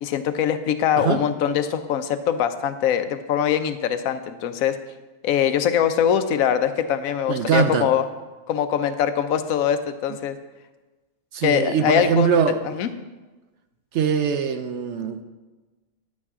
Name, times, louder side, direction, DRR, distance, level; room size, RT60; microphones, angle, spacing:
voice 1, 0.0-4.8 5.2-8.0 8.5-10.4 11.4-12.4 12.6-12.9, left 8 dB, 90° left, 11 dB, 1.1 m, -22 dB
voice 2, 7.3-7.9 11.3-12.6 13.9-15.2, right 7 dB, 65° right, 9 dB, 0.8 m, -22 dB
10.5 x 8.5 x 3.6 m, 1.2 s
omnidirectional pair, 1.4 m